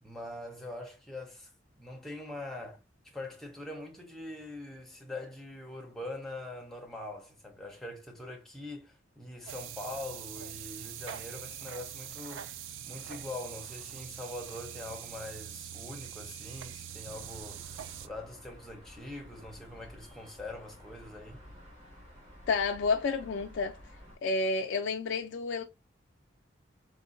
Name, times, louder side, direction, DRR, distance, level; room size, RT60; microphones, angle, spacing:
voice 1, 0.0-1.5 1.8-2.8 3.0-12.6 12.8-17.6 18.0-21.4, left 2 dB, ahead, 0.6 m, -43 dB
sound 1, 9.5-18.1, right 10 dB, 75° right, 0.3 m, -43 dB
sound 2, 17.1-24.2, equal, 35° right, 1.3 m, -52 dB
voice 2, 22.5-23.8 24.2-25.6, left 4 dB, 70° left, 0.3 m, -30 dB
3.6 x 2.1 x 2.4 m
head